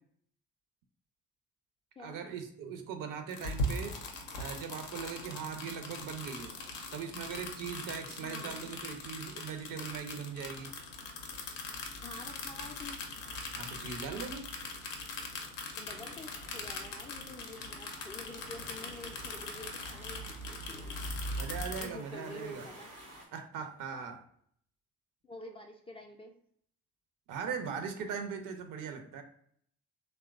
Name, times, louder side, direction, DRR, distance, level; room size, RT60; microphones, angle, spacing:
voice 1, 2.0-4.0 4.4-6.5 6.9-10.7 13.5-14.5 21.4-22.7 23.3-24.2 27.3-29.2, right 6 dB, 55° right, 6 dB, 0.5 m, -40 dB
sound 1, 3.3-21.9, left 2 dB, 85° left, 0.5 m, -41 dB
voice 2, 8.2-8.6 12.0-13.0 15.8-21.1 21.8-22.9 25.2-26.3, left 2 dB, 15° left, 2 dB, 0.3 m, -48 dB
sound 2, 15.9-23.3, right 1 dB, 85° right, 0.8 m, -53 dB
3.0 x 2.1 x 2.3 m, 0.63 s
hypercardioid pair, 40°, 38 cm